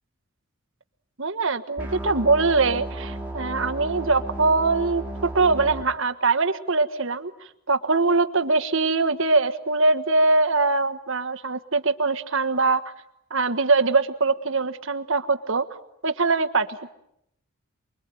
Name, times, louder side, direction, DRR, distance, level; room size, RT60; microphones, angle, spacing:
voice 1, 1.2-7.3 7.7-12.8 13.3-15.6 16.0-16.7, right 3 dB, 60° right, 10 dB, 1.5 m, -22 dB
sound 1, 1.8-5.8, right 1 dB, 5° right, 2.1 m, -34 dB
28.5 x 22.5 x 9.2 m, 0.79 s
head